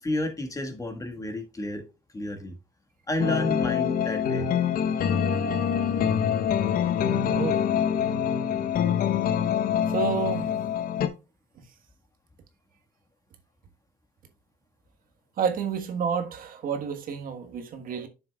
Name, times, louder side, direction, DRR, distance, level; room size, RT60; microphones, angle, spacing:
voice 1, 0.0-1.8 2.1-2.5 3.1-4.5, left 1 dB, 20° left, 1.6 m, -31 dB
sound 1, 3.2-11.1, left 8 dB, 60° left, 0.9 m, -25 dB
voice 2, 7.3-7.7 9.9-10.5 15.4-18.1, right 7 dB, 55° right, 1.4 m, -29 dB
9.7 x 6.9 x 2.3 m
cardioid pair, 110°, 17 cm